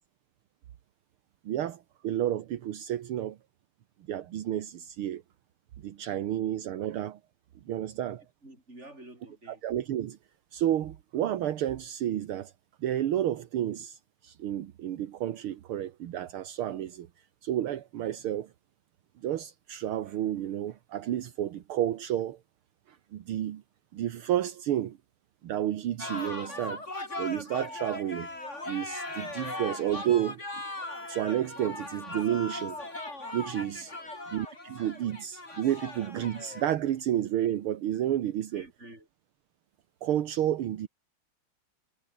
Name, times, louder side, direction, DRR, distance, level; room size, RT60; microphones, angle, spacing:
voice 1, 1.5-3.4 4.1-5.2 5.8-7.2 7.7-8.2 9.6-10.2 10.5-12.5 12.8-17.1 17.4-18.5 19.2-22.4 22.9-23.6 23.9-25.0 25.4-26.8 27.2-28.3 28.7-30.4 31.1-32.8 33.3-33.9 34.3-38.7 40.0-40.9, right 11 dB, 75° right, 2.0 m, -31 dB
voice 2, 8.4-9.6 33.9-34.2 38.5-39.1, right 1 dB, 30° right, 8.3 m, -50 dB
sound 1, 26.0-36.6, left 2 dB, 30° left, 5.4 m, -39 dB
omnidirectional pair, 2.4 m